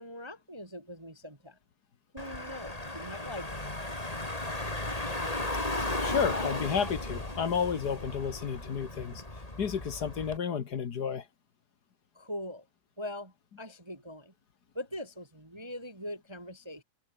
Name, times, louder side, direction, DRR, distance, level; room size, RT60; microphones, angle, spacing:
voice 1, 0.0-1.6 2.1-3.6 12.1-12.6 13.0-14.3 14.7-16.8, left 1 dB, 25° right, 0.6 m, -42 dB
Car / Engine, 2.2-10.4, left 1 dB, 10° left, 3.2 m, -35 dB
voice 2, 6.0-9.2 9.6-11.2, left 7 dB, 50° left, 1.2 m, -31 dB
omnidirectional pair, 3.7 m